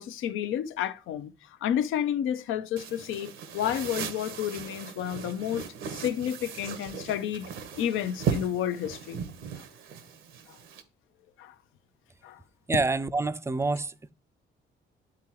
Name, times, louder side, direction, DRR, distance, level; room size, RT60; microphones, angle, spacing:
voice 1, 0.0-1.3 1.6-9.2 11.4-11.5 12.2-12.4, left 10 dB, 85° left, 0.6 m, -31 dB
sound 1, 2.8-10.8, right 7 dB, 80° right, 1.0 m, -37 dB
voice 2, 12.7-14.1, right 3 dB, 15° right, 0.4 m, -27 dB
9.8 x 3.7 x 2.9 m
cardioid pair, 90°, 20 cm